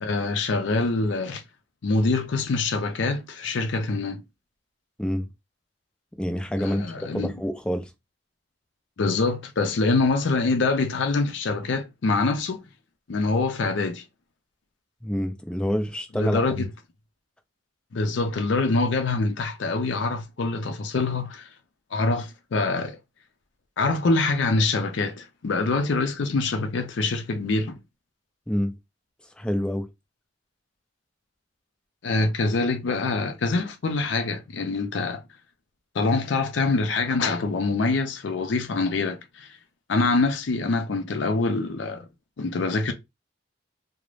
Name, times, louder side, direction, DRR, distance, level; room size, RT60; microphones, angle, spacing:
voice 1, 0.0-1.4 1.8-4.2 6.6-7.3 9.0-12.6 13.1-14.0 16.1-16.7 17.9-21.5 21.9-23.0 23.8-27.8 32.0-35.2 35.9-39.5 39.9-42.1 42.4-42.9, left 3 dB, 70° left, 0.5 m, -25 dB
voice 2, 6.2-6.9 7.1-7.9 15.0-16.6 28.5-28.7 29.4-29.9, equal, 5° left, 0.4 m, -27 dB
2.4 x 2.0 x 3.1 m
head